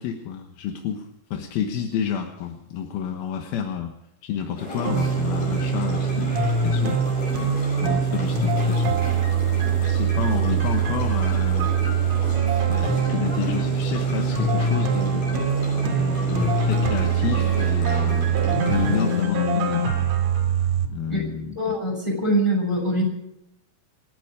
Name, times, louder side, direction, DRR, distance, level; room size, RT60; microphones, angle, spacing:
voice 1, 0.0-4.0 4.2-7.0 7.4-9.0 9.7-11.8 12.7-15.5 15.9-19.9 20.9-21.7, left 8 dB, 65° left, 3 dB, 2.8 m, -30 dB
sound 1, 4.6-19.2, equal, 45° left, 7.5 m, -33 dB
sound 2, 4.8-20.9, right 5 dB, 50° right, 2.3 m, -23 dB
voice 2, 21.6-23.0, right 1 dB, 5° left, 0 dB, 6.1 m, -23 dB
28.5 x 10.0 x 5.0 m, 0.84 s
omnidirectional pair, 5.3 m